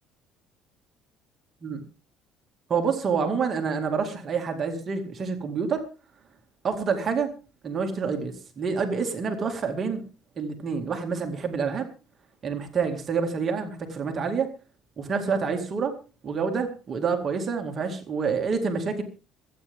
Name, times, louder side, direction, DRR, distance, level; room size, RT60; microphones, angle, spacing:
voice 1, 2.7-5.8 6.6-7.3 7.6-10.0 10.4-11.9 12.4-14.5 15.0-15.9 16.2-19.0, right 5 dB, 25° right, 4 dB, 2.1 m, -27 dB
26.5 x 9.1 x 3.6 m, 0.33 s
cardioid pair, 175°, 0 cm